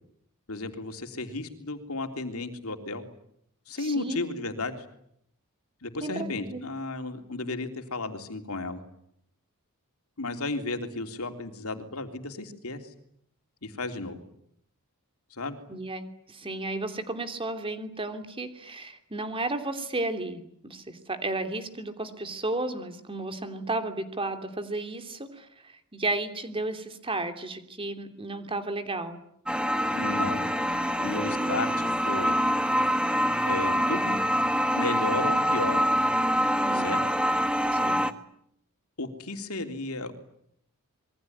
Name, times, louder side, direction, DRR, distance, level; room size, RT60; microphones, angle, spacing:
voice 1, 0.5-3.0 3.7-4.8 5.8-8.8 10.2-12.8 13.6-14.2 15.3-15.6 29.9-30.5 31.0-32.4 33.5-34.2 34.8-35.9 36.7-37.0 39.0-40.1, left 2 dB, 70° left, 6 dB, 3.4 m, -33 dB
voice 2, 3.8-4.2 6.0-6.6 15.7-29.2 36.6-36.9 37.7-38.0, right 2 dB, 25° right, 8 dB, 3.0 m, -33 dB
sound 1, 29.5-38.1, equal, 5° right, 1.5 m, -25 dB
27.0 x 22.5 x 9.6 m, 0.72 s
head